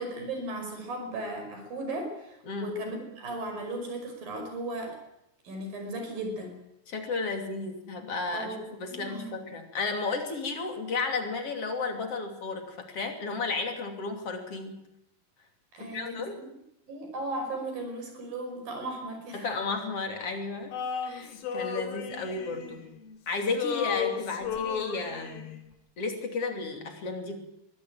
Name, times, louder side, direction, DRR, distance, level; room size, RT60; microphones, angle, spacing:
voice 1, 0.0-5.0 5.4-6.5 8.3-8.6 8.9-9.3 15.7-16.5 16.9-19.5 21.8-21.9 22.3-22.4, right 1 dB, 65° right, 4 dB, 7.1 m, -36 dB
voice 2, 6.9-14.8 15.8-16.4 19.3-22.8 23.3-25.5 26.0-27.4, left 4 dB, 40° left, 4 dB, 3.6 m, -33 dB
Male singing, 20.7-23.2 23.4-25.6, left 7 dB, 75° left, 3.9 m, -34 dB
22.5 x 16.5 x 9.0 m, 0.82 s
omnidirectional pair, 4.3 m